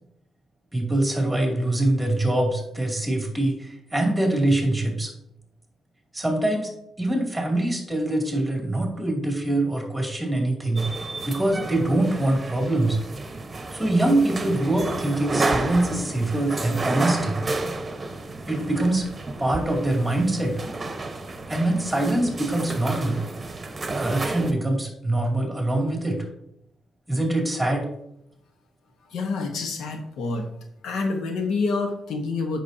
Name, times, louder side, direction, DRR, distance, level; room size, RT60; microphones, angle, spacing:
voice 1, 0.7-5.1 6.1-6.7 7.0-10.9 11.3-13.0 13.7-17.4 18.5-19.1 19.4-20.6 21.5-23.2 24.0-26.3 27.1-27.9, right 1 dB, 5° right, 0 dB, 2.4 m, -24 dB
sound 1, 10.7-24.5, right 2 dB, 30° right, 1.0 m, -31 dB
voice 2, 29.1-30.5 30.8-32.6, left 3 dB, 80° left, 5 dB, 1.0 m, -27 dB
8.3 x 5.9 x 2.7 m, 0.76 s
cardioid pair, 80°, 0 cm